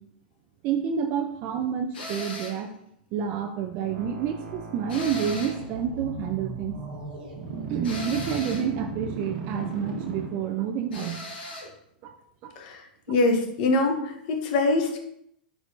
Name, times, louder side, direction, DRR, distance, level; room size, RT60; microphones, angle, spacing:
voice 1, 0.6-2.7 3.1-6.8 7.7-11.3 12.0-12.1 12.4-12.5 13.1-13.2, right 8 dB, 45° right, 5 dB, 0.4 m, -29 dB
sound 1, 1.9-2.7 4.9-5.7 7.8-8.7 10.9-11.7, left 1 dB, 90° left, 1.6 m, -37 dB
sound 2, 3.8-10.8, right 4 dB, 80° right, 1.1 m, -37 dB
voice 2, 13.1-15.0, left 2 dB, 60° left, 4 dB, 0.9 m, -24 dB
4.4 x 4.1 x 2.7 m, 0.74 s
hypercardioid pair, 120°, 5 cm